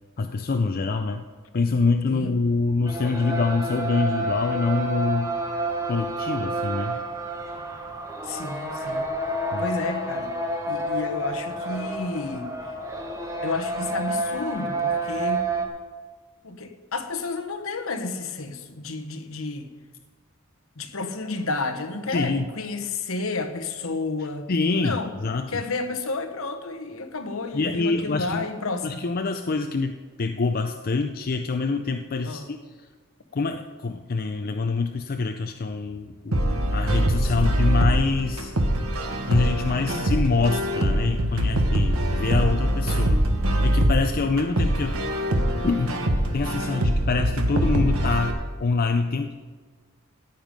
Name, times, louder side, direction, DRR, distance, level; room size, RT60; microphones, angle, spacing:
voice 1, 0.2-1.2 1.5-5.3 5.9-7.0 9.5-9.6 22.1-22.5 24.5-25.5 27.5-28.5 28.8-32.6 33.3-36.4 36.7-38.5 39.3-43.2 43.6-45.0 45.6-46.0 46.3-49.5, left 4 dB, 45° left, 6 dB, 0.5 m, -25 dB
sound 1, 2.9-15.7, right 1 dB, 15° right, 1.3 m, -29 dB
voice 2, 8.2-9.1 9.6-10.3 10.7-12.5 13.4-15.4 16.4-19.7 20.8-24.5 24.8-25.1 25.5-29.0 32.2-32.5 37.2-37.5 39.8-40.2, left 3 dB, 65° left, 7 dB, 1.1 m, -31 dB
sound 2, 36.3-48.3, right 1 dB, 80° right, 1.5 m, -23 dB
14.5 x 9.1 x 5.2 m, 1.4 s
head